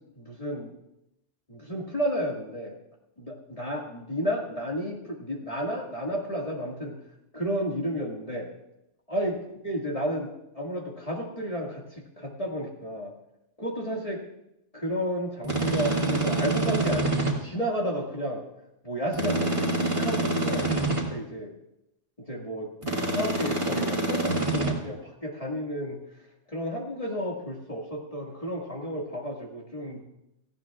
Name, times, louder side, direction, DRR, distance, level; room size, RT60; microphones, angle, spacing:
voice 1, 0.2-0.7 1.5-2.7 3.2-7.0 7.3-8.5 9.1-9.4 9.6-11.9 12.2-13.1 13.6-14.2 14.7-18.4 18.8-21.5 22.3-26.0 26.5-30.0, equal, 25° left, -2 dB, 2.0 m, -32 dB
sound 1, 15.4-17.3 19.1-21.0 22.8-24.7, right 2 dB, 25° right, 2.4 m, -26 dB
17.5 x 16.0 x 2.4 m, 0.85 s
omnidirectional pair, 1.3 m